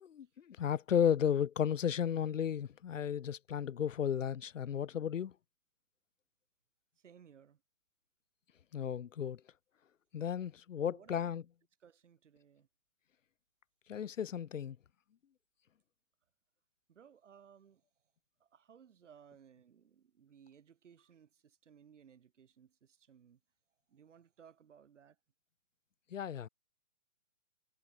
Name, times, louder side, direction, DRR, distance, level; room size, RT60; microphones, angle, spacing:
voice 1, 0.0-5.3 8.7-9.4 10.1-11.4 13.9-14.8 26.1-26.5, left 8 dB, 70° left, 0.9 m, -34 dB
voice 2, 7.0-7.6 10.8-11.4 11.8-12.7 16.9-17.8 18.4-23.4 23.9-25.2, right 8 dB, 60° right, 2.8 m, -60 dB
figure-of-eight pair, 135°, 40 cm